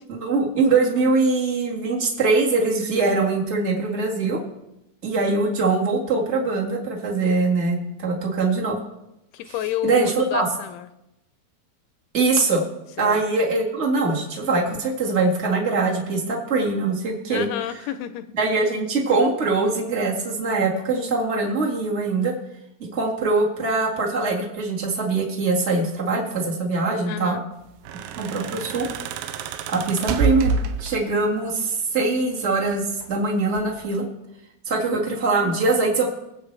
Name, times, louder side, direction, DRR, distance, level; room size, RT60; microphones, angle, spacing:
voice 1, 0.1-4.4 5.0-8.8 9.5-9.6 9.8-10.5 12.1-12.6 13.0-17.5 18.4-22.3 22.9-27.4 28.2-28.9 29.7-34.0 34.6-36.1, right 3 dB, 75° right, -3 dB, 0.6 m, -22 dB
voice 2, 9.3-10.9 13.0-13.2 17.3-18.3 27.0-27.4, left 11 dB, 85° left, 12 dB, 2.4 m, -29 dB
sound 1, 27.7-31.3 32.4-33.1 33.6-33.9, right 4 dB, 90° right, 2.9 m, -27 dB
22.5 x 7.7 x 3.3 m, 0.88 s
omnidirectional pair, 4.8 m